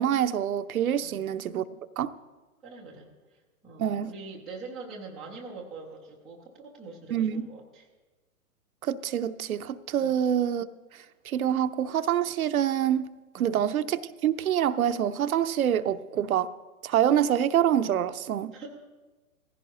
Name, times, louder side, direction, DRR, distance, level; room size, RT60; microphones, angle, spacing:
voice 1, 0.0-1.6 2.0-2.1 3.8-4.1 7.1-7.4 8.8-10.7 10.9-13.1 13.3-16.5 16.8-18.5, right 10 dB, 70° right, 0.7 m, -26 dB
voice 2, 2.6-7.8 10.0-10.1 13.4-13.6 18.5-18.7, right 3 dB, ahead, 0.3 m, -44 dB
16.5 x 15.0 x 2.8 m
hypercardioid pair, 120°, 44 cm